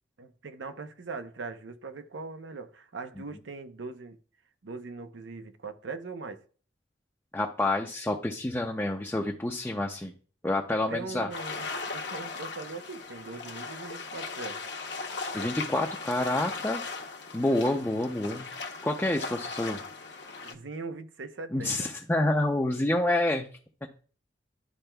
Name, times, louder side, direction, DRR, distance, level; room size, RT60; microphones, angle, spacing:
voice 1, 0.2-4.2 4.6-6.4 10.7-14.6 17.4-17.7 20.4-21.9, right 4 dB, 80° right, 0.7 m, -41 dB
voice 2, 7.3-10.1 10.4-11.3 15.3-16.8 17.3-18.5 18.8-19.8 21.5-23.5, left 1 dB, 10° left, 0.5 m, -28 dB
sound 1, 11.3-20.5, left 4 dB, 65° left, 0.8 m, -38 dB
12.0 x 4.4 x 2.3 m
head